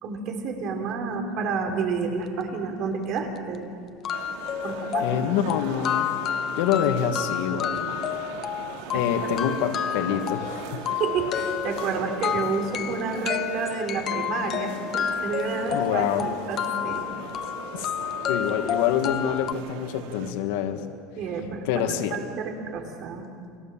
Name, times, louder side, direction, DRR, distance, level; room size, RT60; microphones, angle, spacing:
voice 1, 0.0-3.7 4.6-5.4 7.7-8.0 8.9-9.0 11.0-17.1 21.2-23.2, right 5 dB, 40° right, 4 dB, 4.0 m, -30 dB
sound 1, 3.1-3.2 3.5-3.6 4.0-19.5, left 10 dB, 30° left, 0.9 m, -30 dB
sound 2, 4.1-20.3, right 6 dB, 90° right, 3.5 m, -39 dB
voice 2, 5.0-6.1 6.6-8.0 8.9-10.8 15.7-16.3 17.7-17.9 18.3-20.9 21.6-22.2, left 9 dB, 70° left, 6 dB, 2.1 m, -26 dB
29.5 x 23.5 x 7.5 m, 2.3 s
cardioid pair, 165°, 0 cm